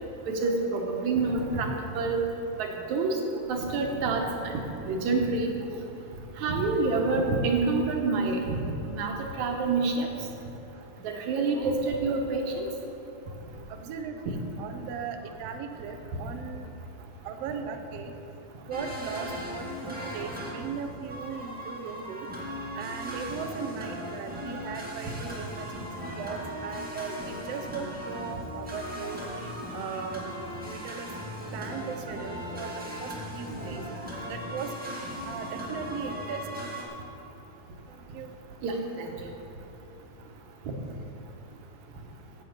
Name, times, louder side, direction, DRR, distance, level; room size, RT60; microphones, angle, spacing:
voice 1, 0.3-2.2 2.6-3.2 3.5-5.5 6.4-8.6 8.9-10.1 11.0-12.7 38.6-39.1, right 3 dB, 65° right, 2 dB, 2.3 m, -27 dB
voice 2, 13.7-16.7 17.2-18.1 18.6-22.3 22.7-25.9 26.1-29.2 29.7-30.2 30.6-31.1 31.5-33.8 34.3-34.7 35.2-36.5 37.9-38.3, right 6 dB, 90° right, 5 dB, 1.3 m, -38 dB
sound 1, 18.7-36.8, equal, 5° right, 0.8 m, -38 dB
15.5 x 7.5 x 5.1 m, 2.9 s
omnidirectional pair, 3.8 m